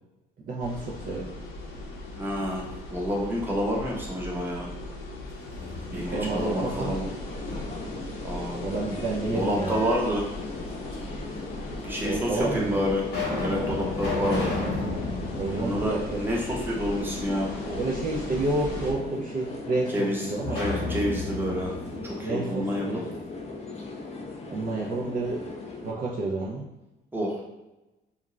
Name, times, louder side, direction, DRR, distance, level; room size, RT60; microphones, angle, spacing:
voice 1, 0.5-1.2 5.9-6.9 8.6-9.8 12.0-12.8 15.4-16.2 17.8-20.6 22.2-23.0 24.5-25.4 25.8-26.6, right 2 dB, 45° right, -3 dB, 0.5 m, -30 dB
sound 1, 0.6-18.9, left 2 dB, 90° left, 0.6 m, -39 dB
voice 2, 2.1-4.7 5.9-7.1 8.2-8.6 9.3-10.3 11.8-13.0 13.4-14.5 15.5-17.8 19.9-21.7 22.0-23.1 27.1-27.4, equal, 10° right, -3 dB, 0.8 m, -29 dB
sound 2, 5.3-6.3 6.7-8.0 9.2-10.0 10.9-11.0 11.9-12.0 12.6-16.7 17.0-17.1 20.4-23.2, left 2 dB, 55° left, 1.0 m, -33 dB
sound 3, 6.0-25.9, left 2 dB, 30° left, 0.5 m, -39 dB
2.5 x 2.2 x 3.0 m, 1.0 s
cardioid pair, 90°, 20 cm